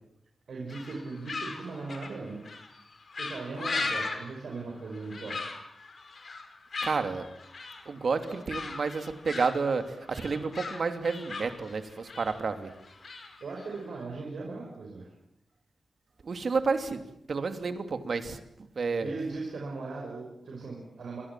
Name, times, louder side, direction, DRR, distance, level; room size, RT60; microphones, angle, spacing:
voice 1, 0.5-2.4 3.2-5.4 13.4-15.1 19.0-21.2, right 3 dB, 75° right, -1 dB, 6.1 m, -38 dB
sound 1, 0.7-14.0, left 3 dB, 45° left, 5.3 m, -38 dB
voice 2, 6.8-7.3 7.9-12.7 16.2-17.0 17.3-18.4 18.8-19.1, right 4 dB, 50° right, 7 dB, 2.8 m, -30 dB
28.0 x 25.5 x 7.6 m, 0.77 s
wide cardioid pair, 160°, 0 cm